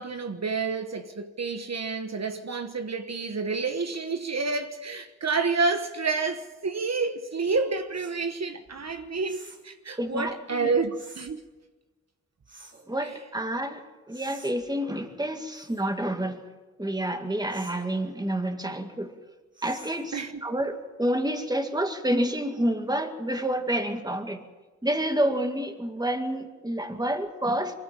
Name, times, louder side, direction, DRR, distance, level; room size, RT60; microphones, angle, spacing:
voice 1, 0.0-11.4 13.0-13.1 20.1-20.3, right 4 dB, 60° right, 1.2 m, -29 dB
sound 1, 7.9-8.2 9.2-9.7 10.9-11.3 12.5-12.9 14.1-14.5 15.5-15.9 17.5-17.8 19.5-20.1, right 2 dB, 40° right, 3.5 m, -48 dB
voice 2, 10.0-10.7 12.9-16.4 16.8-19.1 19.6-24.4 24.8-27.7, right 1 dB, 15° right, 2.0 m, -29 dB
23.0 x 15.5 x 7.5 m
wide cardioid pair, 80°, 29 cm